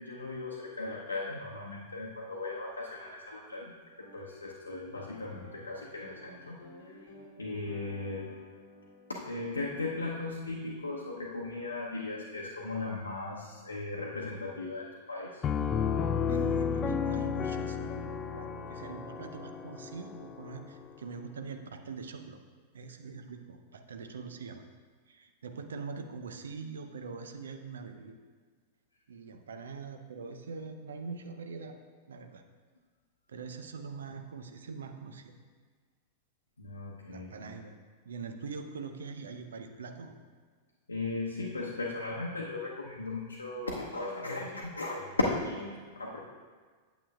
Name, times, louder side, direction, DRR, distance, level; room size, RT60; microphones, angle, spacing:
voice 1, 0.0-3.7 4.0-8.4 9.1-15.4 36.6-37.6 40.9-46.2, left 2 dB, 85° left, -3 dB, 0.7 m, -37 dB
sound 1, 4.0-12.5, left 1 dB, 60° left, 1.0 m, -55 dB
Piano, 15.4-21.0, left 6 dB, 30° left, 0.3 m, -32 dB
voice 2, 16.3-22.4 22.7-24.6 25.1-28.2 29.1-31.7 32.1-32.4 33.3-35.3 37.1-37.7 38.0-40.1, right 5 dB, 70° right, 6 dB, 0.6 m, -43 dB
8.7 x 8.0 x 2.3 m, 1.5 s
figure-of-eight pair, 95°, 0 cm